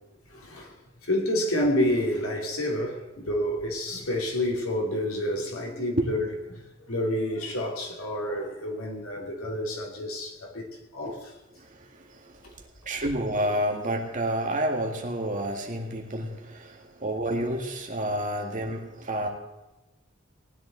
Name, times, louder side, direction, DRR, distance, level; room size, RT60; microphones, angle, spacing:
voice 1, 0.3-0.7 1.0-10.7 10.9-11.3, left 1 dB, 85° left, 2.9 m, -29 dB
voice 2, 11.6-12.5 12.9-19.3, right 1 dB, 40° right, 2.0 m, -30 dB
18.5 x 10.5 x 4.0 m
head